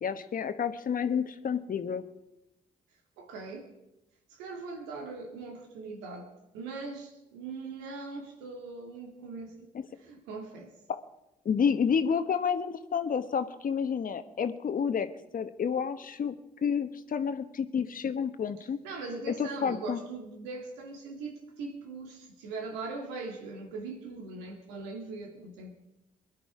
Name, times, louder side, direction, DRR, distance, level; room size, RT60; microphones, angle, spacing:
voice 1, 0.0-2.0 9.7-9.8 11.4-15.1 15.3-16.3 16.6-18.8 19.4-20.0, left 7 dB, 50° left, 10 dB, 1.3 m, -29 dB
voice 2, 3.2-3.7 4.3-10.7 18.8-25.7, right 3 dB, 80° right, 3 dB, 2.2 m, -41 dB
22.0 x 11.0 x 4.9 m, 0.92 s
hypercardioid pair, 40°, 18 cm